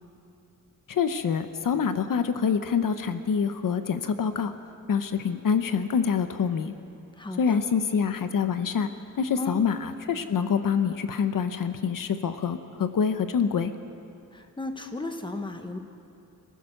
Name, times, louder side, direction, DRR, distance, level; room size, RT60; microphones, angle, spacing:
voice 1, 0.9-4.5 4.9-6.7 7.4-8.9 9.2-13.7, left 6 dB, 70° left, 10 dB, 0.9 m, -26 dB
voice 2, 7.2-7.6 9.4-9.6 14.3-15.8, left 2 dB, 15° left, 6 dB, 1.3 m, -34 dB
26.5 x 15.0 x 6.6 m, 2.6 s
wide cardioid pair, 160°, 34 cm